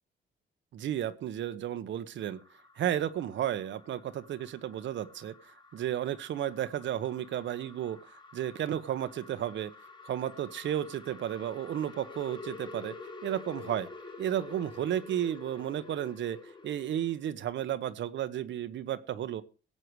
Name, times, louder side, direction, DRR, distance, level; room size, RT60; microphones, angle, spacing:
voice 1, 0.7-2.4 2.8-5.3 5.7-9.7 10.0-12.9 13.2-13.9 14.2-16.4 16.6-19.4, right 11 dB, 70° right, 12 dB, 1.0 m, -33 dB
sound 1, 2.2-17.3, left 3 dB, 25° left, 2.0 m, -49 dB
16.5 x 7.8 x 4.8 m, 0.35 s
cardioid pair, 90°, 20 cm